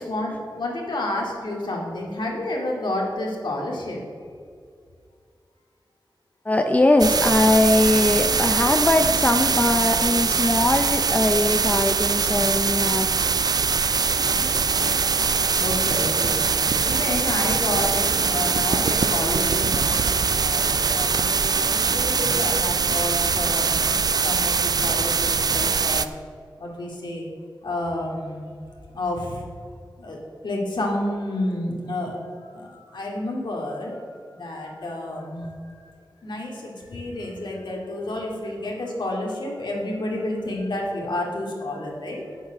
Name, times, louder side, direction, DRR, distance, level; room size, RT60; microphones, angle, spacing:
voice 1, 0.0-4.0 15.6-16.4 16.8-26.1 26.6-27.3 27.6-28.5 28.9-29.7 30.0-30.2 30.4-35.5 36.2-42.4, left 1 dB, 70° left, -1 dB, 2.3 m, -30 dB
voice 2, 6.4-13.5 18.3-18.6, left 1 dB, 20° left, 5 dB, 0.5 m, -21 dB
sound 1, 7.0-26.0, right 5 dB, 55° right, 0.4 m, -22 dB
sound 2, 13.8-22.5, right 1 dB, 35° right, 1.2 m, -40 dB
8.6 x 8.1 x 6.3 m, 2.2 s
wide cardioid pair, 95°, 8 cm